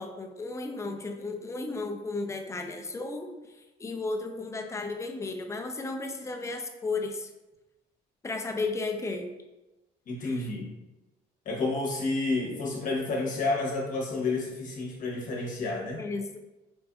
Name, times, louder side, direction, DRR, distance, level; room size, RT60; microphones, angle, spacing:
voice 1, 0.0-7.3 8.2-9.3 10.2-10.5 16.0-16.4, left 3 dB, 15° left, 3 dB, 0.4 m, -34 dB
voice 2, 10.1-10.7 11.4-16.0, left 3 dB, 50° left, -2 dB, 1.1 m, -30 dB
4.4 x 2.5 x 2.3 m, 1.0 s
cardioid pair, 110°, 17 cm